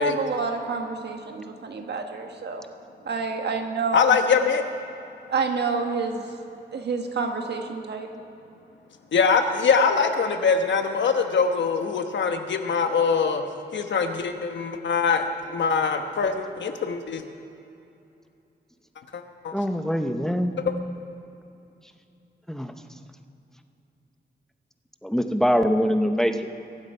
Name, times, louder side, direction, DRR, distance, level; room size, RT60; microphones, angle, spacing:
voice 1, 0.0-2.6 3.0-4.2 5.3-6.3 6.7-8.1, right 4 dB, 65° right, 4 dB, 1.5 m, -28 dB
voice 2, 3.9-4.6 9.1-13.4 13.7-17.2 19.1-19.5, left 5 dB, 90° left, 6 dB, 1.1 m, -23 dB
voice 3, 19.5-20.5 22.5-22.7 25.0-26.5, equal, 5° left, 7 dB, 0.7 m, -23 dB
23.5 x 8.1 x 5.5 m, 2.7 s
wide cardioid pair, 130°, 18 cm